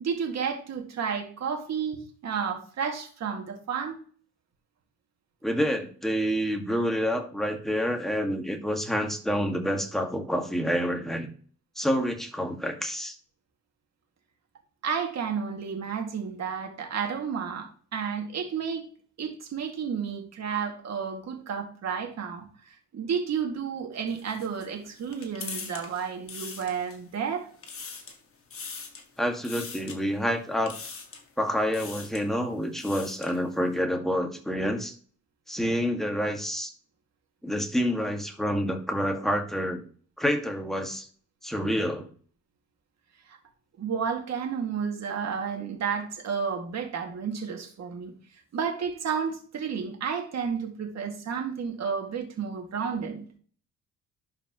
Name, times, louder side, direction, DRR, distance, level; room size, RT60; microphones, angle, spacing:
voice 1, 0.0-4.0 14.8-18.8 19.2-27.5 43.3-43.4 43.8-48.2 48.5-53.3, right 6 dB, 60° right, 3 dB, 2.3 m, -31 dB
voice 2, 5.4-11.3 11.8-13.1 29.2-30.8 31.4-34.9 35.5-36.7 37.4-39.8 40.2-41.1 41.4-42.1, equal, ahead, 3 dB, 2.0 m, -28 dB
sound 1, 24.1-27.2 27.5-28.2 28.5-29.1 29.4-30.0 30.7-31.3 31.7-32.3 32.6-33.4, left 5 dB, 45° left, 1.8 m, -41 dB
11.5 x 5.0 x 3.1 m, 0.44 s
cardioid pair, 90°, 30 cm